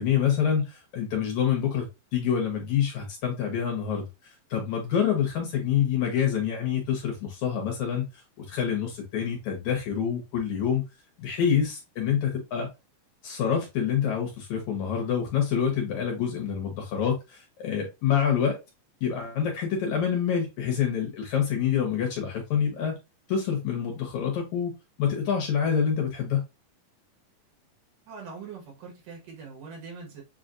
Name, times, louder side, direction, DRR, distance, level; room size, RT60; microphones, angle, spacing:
voice 1, 0.0-1.9 2.1-8.0 8.4-10.8 11.2-12.7 13.2-18.6 19.0-22.9 23.3-24.7 25.0-26.4, left 8 dB, 65° left, 2.1 m, -27 dB
voice 2, 28.1-30.2, right 5 dB, 70° right, 2.9 m, -42 dB
7.2 x 2.4 x 2.5 m
omnidirectional pair, 4.1 m